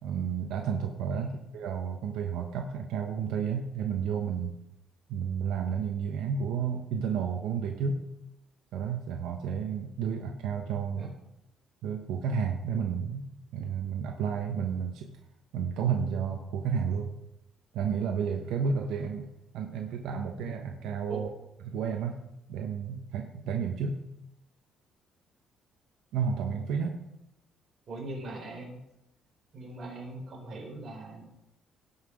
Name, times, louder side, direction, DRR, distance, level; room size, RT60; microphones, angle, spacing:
voice 1, 0.0-4.5 5.1-8.0 8.7-11.1 11.8-13.2 13.5-15.2 15.5-17.1 17.7-21.3 21.7-22.2 22.5-24.0 26.1-27.0, right 6 dB, 80° right, 3 dB, 1.1 m, -31 dB
voice 2, 27.9-28.8 29.5-31.2, right 2 dB, 40° right, -1 dB, 4.1 m, -41 dB
17.0 x 5.9 x 5.0 m, 0.86 s
cardioid pair, 150°, 0 cm